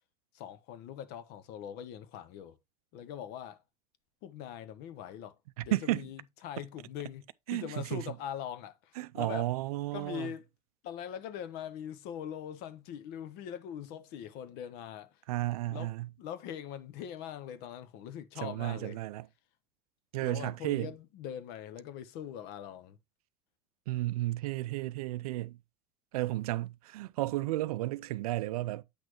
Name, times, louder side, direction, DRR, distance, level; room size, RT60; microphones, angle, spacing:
voice 1, 0.3-2.6 2.9-3.6 4.2-9.5 9.9-10.4 10.8-15.2 15.7-15.9 16.2-19.0 20.2-23.0, left 9 dB, 55° left, 0.9 m, -42 dB
voice 2, 5.6-6.0 7.5-8.1 9.0-10.3 15.3-16.1 18.4-19.3 20.1-20.9 23.9-25.6 26.1-28.8, right 17 dB, 65° right, 0.5 m, -33 dB
8.4 x 6.1 x 2.9 m
figure-of-eight pair, 70°, 20 cm